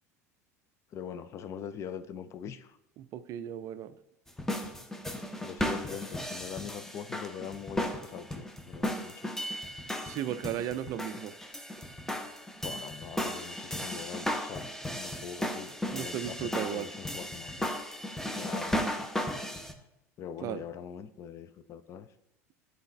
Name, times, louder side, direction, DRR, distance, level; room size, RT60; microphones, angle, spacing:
voice 1, 0.9-2.8 5.4-9.3 12.6-17.8 18.3-19.1 20.2-22.1, left 8 dB, 35° left, 0.4 m, -43 dB
voice 2, 3.0-4.0 10.0-11.4 15.9-16.9 20.4-20.6, right 11 dB, 40° right, 0.4 m, -35 dB
sound 1, 4.3-19.7, left 1 dB, 5° left, 0.7 m, -35 dB
11.0 x 4.0 x 3.2 m
figure-of-eight pair, 70°, 8 cm